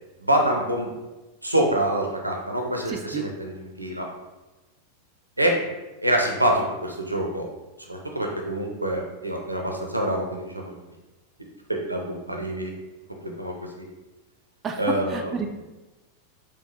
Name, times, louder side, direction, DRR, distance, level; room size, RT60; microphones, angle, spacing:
voice 1, 0.2-0.9 1.4-4.1 5.4-5.7 6.0-7.5 7.8-10.8 11.7-12.7 13.2-13.9 14.8-15.3, right 1 dB, 85° right, 1 dB, 0.5 m, -26 dB
voice 2, 2.9-3.3 14.6-14.8 15.1-15.5, right 6 dB, 20° right, 4 dB, 0.3 m, -31 dB
4.0 x 2.3 x 3.0 m, 1.1 s
figure-of-eight pair, 90°, 0 cm